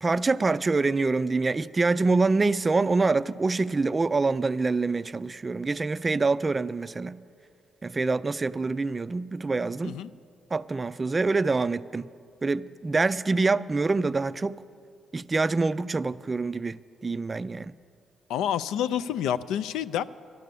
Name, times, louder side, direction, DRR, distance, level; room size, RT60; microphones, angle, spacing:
voice 1, 0.0-7.2 7.8-10.0 10.5-12.1 12.4-14.6 15.1-17.7, right 3 dB, 25° right, 0.3 m, -25 dB
voice 2, 18.3-20.0, left 10 dB, 90° left, 0.3 m, -28 dB
12.0 x 11.5 x 6.8 m
cardioid pair, 90°, 0 cm